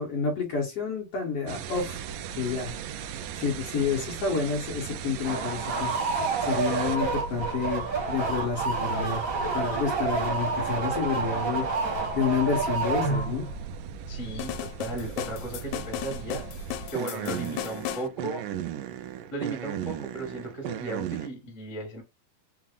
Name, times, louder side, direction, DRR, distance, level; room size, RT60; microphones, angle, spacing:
voice 1, 0.0-2.0 2.4-2.7 3.4-5.9 6.4-9.2 9.5-13.5, left 5 dB, 60° left, 1.7 m, -29 dB
sound 1, 1.5-21.3, right 8 dB, 80° right, 1.8 m, -37 dB
sound 2, 5.2-13.6, right 4 dB, 45° right, 1.1 m, -29 dB
voice 2, 14.1-16.4 16.9-18.4 19.3-22.0, right 2 dB, 45° left, 0.3 m, -36 dB
sound 3, 14.4-18.1, left 14 dB, 85° left, 2.3 m, -36 dB
5.8 x 2.1 x 3.5 m
omnidirectional pair, 4.1 m